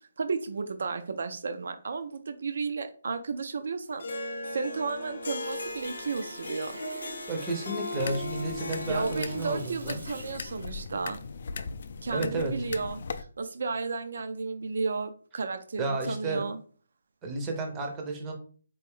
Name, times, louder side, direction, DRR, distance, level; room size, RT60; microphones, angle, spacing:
voice 1, 0.2-4.0 4.5-6.8 8.9-11.2 12.0-16.6, right 4 dB, 55° right, 9 dB, 0.4 m, -33 dB
Harp, 4.0-9.8, left 2 dB, 60° left, 0.7 m, -38 dB
Water tap faucet, 5.4-11.8 12.2-12.3, right 2 dB, 80° right, 2.0 m, -47 dB
voice 2, 7.3-10.0 12.1-12.5 15.8-16.4 17.2-18.3, right 2 dB, 10° right, 3 dB, 0.6 m, -32 dB
sound 1, 8.0-13.2, left 5 dB, 45° left, 0.3 m, -39 dB
4.4 x 2.5 x 3.5 m, 0.42 s
hypercardioid pair, 175°, 0 cm